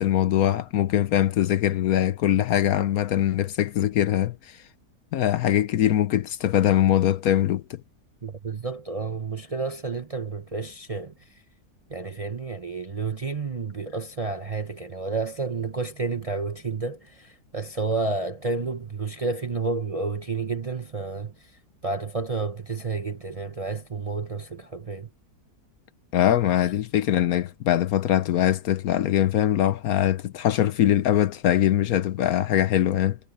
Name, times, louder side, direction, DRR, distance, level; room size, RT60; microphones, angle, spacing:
voice 1, 0.0-4.6 5.1-7.8 26.1-33.2, left 11 dB, 65° left, 1.1 m, -22 dB
voice 2, 8.2-11.4 11.9-21.5 21.8-25.1, right 3 dB, 30° right, 0.7 m, -30 dB
omnidirectional pair, 1.8 m